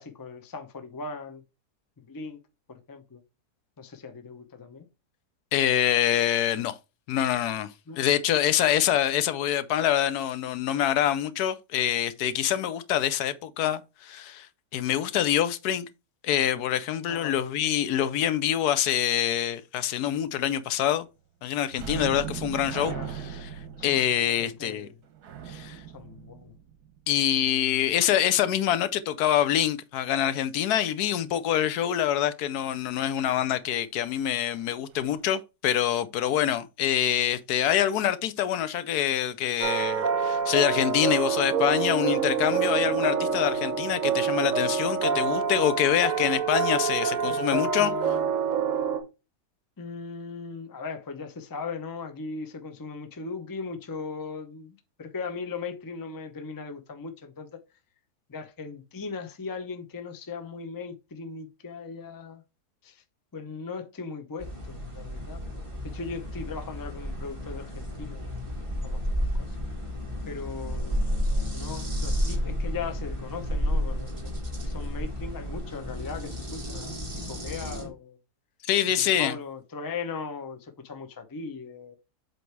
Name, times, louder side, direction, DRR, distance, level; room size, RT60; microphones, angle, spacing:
voice 1, 0.0-1.4 2.0-2.4 2.7-3.2 3.8-4.9 7.9-8.0 8.7-8.8 17.1-17.4 22.0-22.2 22.9-23.1 23.9-24.9 25.9-26.5 47.2-48.3 49.8-57.6 58.3-62.4 62.8-63.0 63.3-65.4 65.8-68.3 68.8-69.6 70.3-71.0 71.5-74.3 74.6-78.2 79.0-82.0, left 4 dB, 25° left, 0.5 m, -38 dB
voice 2, 5.5-6.8 7.1-7.7 7.9-14.5 14.7-15.9 16.2-21.0 21.4-23.5 23.8-24.9 25.5-25.8 27.1-47.9 78.7-79.3, left 11 dB, 80° left, 1.1 m, -25 dB
sound 1, 21.7-27.1 34.4-34.6 35.0-35.1, right 8 dB, 75° right, 1.4 m, -38 dB
sound 2, 39.6-49.0, right 6 dB, 60° right, 1.4 m, -26 dB
sound 3, 64.4-77.9, equal, 20° right, 1.8 m, -31 dB
7.7 x 3.3 x 4.5 m
omnidirectional pair, 1.7 m